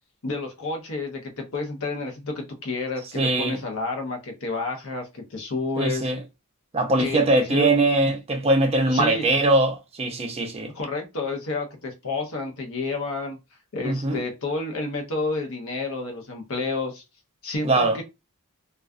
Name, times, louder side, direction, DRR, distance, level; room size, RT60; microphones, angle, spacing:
voice 1, 0.2-6.1 7.0-7.7 8.9-9.3 10.7-13.4 13.7-17.0 17.4-18.0, left 3 dB, 65° left, 0.8 m, -30 dB
voice 2, 3.1-3.6 5.8-6.2 6.7-10.7 13.8-14.2 17.6-18.0, right 2 dB, 30° right, 0.5 m, -21 dB
2.4 x 2.3 x 2.3 m
head